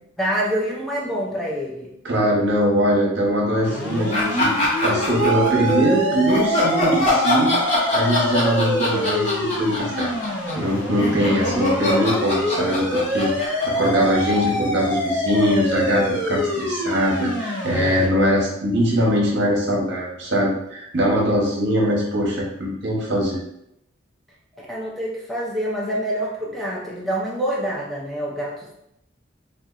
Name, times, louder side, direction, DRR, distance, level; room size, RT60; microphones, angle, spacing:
voice 1, 0.2-1.9 24.5-28.7, equal, ahead, -5 dB, 0.4 m, -26 dB
voice 2, 2.0-7.6 7.9-10.1 10.6-23.4, equal, 60° right, -3 dB, 0.9 m, -22 dB
sound 1, 3.6-18.1, left 1 dB, 65° left, 0.7 m, -26 dB
sound 2, 4.1-5.7 6.3-14.5, left 1 dB, 35° left, 1.0 m, -23 dB
sound 3, 5.2-9.9, right 13 dB, 85° right, 0.4 m, -30 dB
4.2 x 2.3 x 2.4 m, 0.79 s
head